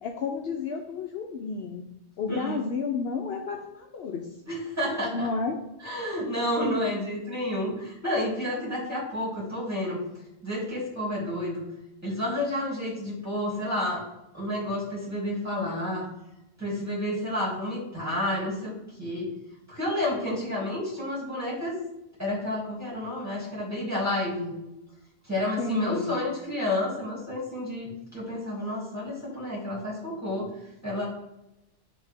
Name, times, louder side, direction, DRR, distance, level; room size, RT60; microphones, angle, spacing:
voice 1, 0.0-1.8 2.2-4.3 5.1-5.6 25.6-26.2, left 4 dB, 60° left, 2 dB, 0.8 m, -31 dB
voice 2, 2.3-2.6 4.5-5.3 5.8-10.0 10.4-11.7 12.0-14.0 14.3-16.1 16.6-19.3 19.7-21.8 22.2-24.5 25.3-30.5 30.8-31.0, left 1 dB, 15° right, -6 dB, 2.6 m, -30 dB
10.0 x 3.4 x 3.5 m, 0.91 s
omnidirectional pair, 1.2 m